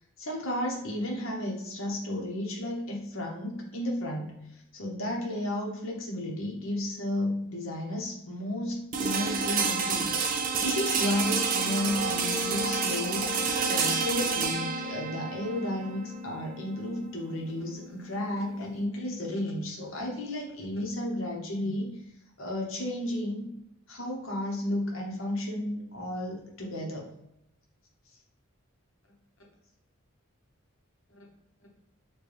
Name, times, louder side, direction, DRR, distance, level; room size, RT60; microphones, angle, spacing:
voice 1, 0.2-22.0 22.4-23.5 23.9-27.1 31.2-31.3, left 1 dB, 65° left, -1 dB, 0.9 m, -33 dB
sound 1, 8.9-18.8, right 4 dB, 40° right, 0.4 m, -29 dB
4.3 x 2.2 x 3.3 m, 0.80 s
head